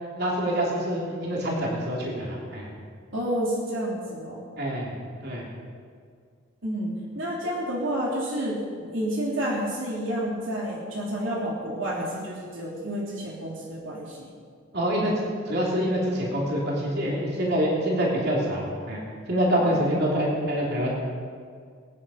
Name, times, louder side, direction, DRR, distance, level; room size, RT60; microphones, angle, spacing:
voice 1, 0.1-2.7 4.6-4.9 5.2-5.4 14.7-15.1 15.5-19.0 19.3-21.1, equal, 50° right, -3 dB, 3.2 m, -26 dB
voice 2, 3.1-4.4 6.6-14.3 19.6-19.9, equal, 65° right, -4 dB, 3.1 m, -30 dB
21.5 x 10.0 x 5.7 m, 2.1 s
head